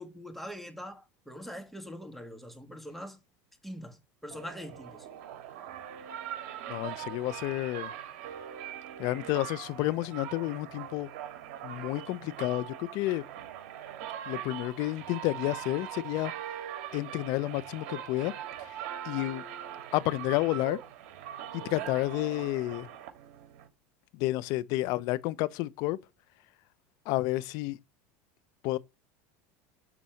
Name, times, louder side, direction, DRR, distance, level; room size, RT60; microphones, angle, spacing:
voice 1, 0.0-3.2 3.6-5.1 21.6-21.9, equal, ahead, 2.3 m, -43 dB
sound 1, 4.3-23.7, right 10 dB, 65° right, 3.0 m, -41 dB
voice 2, 6.7-7.9 9.0-11.1 11.6-13.2 14.3-16.3 16.9-18.3 19.0-19.4 19.9-20.8 21.5-22.9 24.2-26.0 27.1-27.8 28.6-28.8, left 18 dB, 60° left, 0.8 m, -30 dB
12.0 x 4.2 x 7.7 m
supercardioid pair, 125°, 7 cm